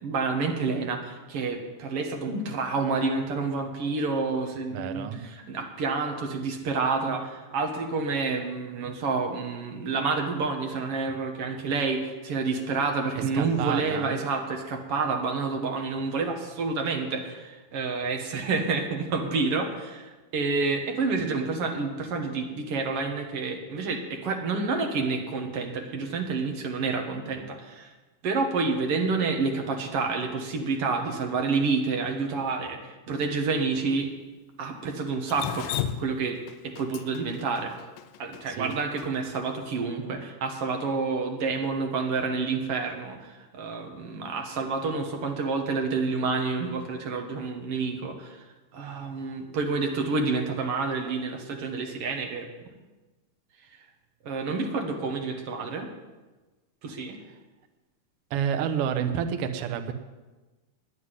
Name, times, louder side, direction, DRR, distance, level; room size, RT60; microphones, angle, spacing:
voice 1, 0.0-27.9 28.2-34.1 34.6-36.4 36.6-37.7 38.2-48.4 48.7-52.5 54.2-55.9 56.8-57.2, right 4 dB, 55° right, 3 dB, 1.9 m, -29 dB
voice 2, 4.7-5.2 13.1-14.1 38.5-38.7 58.3-59.9, right 8 dB, 85° right, 7 dB, 1.2 m, -29 dB
Drip, 35.3-39.4, left 10 dB, 85° left, 2.3 m, -34 dB
9.7 x 8.1 x 9.7 m, 1.2 s
omnidirectional pair, 3.9 m